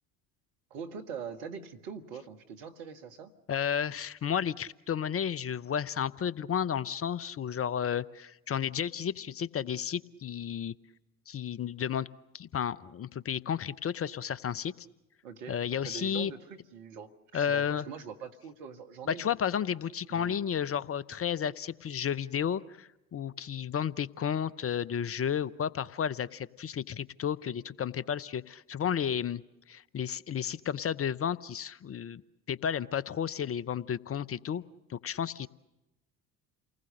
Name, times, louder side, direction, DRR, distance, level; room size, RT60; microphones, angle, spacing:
voice 1, 0.7-3.3 15.2-19.4 20.1-20.4, right 6 dB, 70° right, 6 dB, 1.8 m, -43 dB
voice 2, 3.5-10.7 11.3-12.1 12.3-14.7 15.5-16.3 17.3-17.8 19.1-29.4 29.7-32.2 32.5-34.6 34.9-35.5, left 8 dB, 35° left, 18 dB, 0.8 m, -32 dB
29.0 x 20.0 x 6.6 m, 0.94 s
figure-of-eight pair, 55°, 41 cm